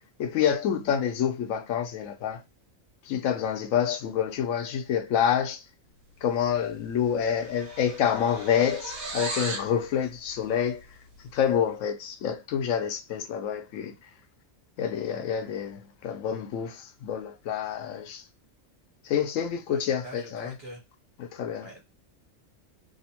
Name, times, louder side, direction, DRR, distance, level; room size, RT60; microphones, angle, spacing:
voice 1, 0.2-2.4 3.0-5.6 6.2-10.9 11.3-13.9 14.8-18.2 19.0-20.6 21.2-21.7, left 8 dB, 85° left, 1.0 m, -27 dB
sound 1, 6.5-6.8 7.0-9.7, right 3 dB, 60° right, 1.1 m, -37 dB
voice 2, 20.0-20.8 21.6-21.8, right 1 dB, 25° right, 0.6 m, -43 dB
2.9 x 2.1 x 2.8 m
omnidirectional pair, 1.3 m